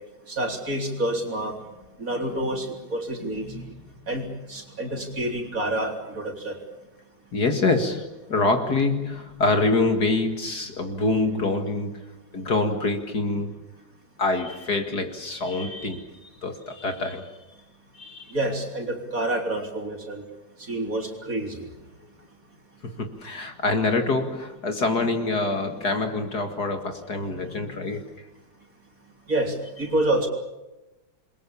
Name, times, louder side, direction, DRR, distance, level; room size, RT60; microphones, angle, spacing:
voice 1, 0.3-1.6 2.0-3.7 4.1-6.6 18.3-20.2 20.6-21.7 29.3-30.3, right 1 dB, 40° right, 3 dB, 4.2 m, -28 dB
voice 2, 2.2-2.7 3.2-3.7 4.9-5.2 7.3-12.0 12.3-13.6 14.2-17.4 17.9-18.3 22.8-28.3, left 3 dB, 50° left, 6 dB, 2.5 m, -26 dB
28.5 x 22.5 x 7.2 m, 1.0 s
omnidirectional pair, 2.4 m